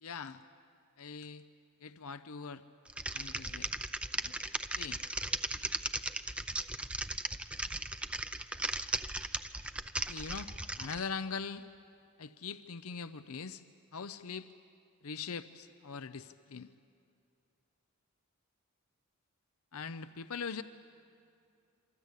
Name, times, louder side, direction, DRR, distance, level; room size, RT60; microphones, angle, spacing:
voice 1, 0.0-0.4 1.0-1.4 1.8-2.6 3.1-3.7 4.2-4.3 4.8-5.0 10.1-11.6 12.2-13.6 13.9-14.5 15.0-16.7 19.7-20.6, left 5 dB, 80° left, 11 dB, 0.7 m, -41 dB
Typing, 2.9-11.0, right 1 dB, 5° right, 0.6 m, -37 dB
27.5 x 25.0 x 8.3 m, 2.5 s
head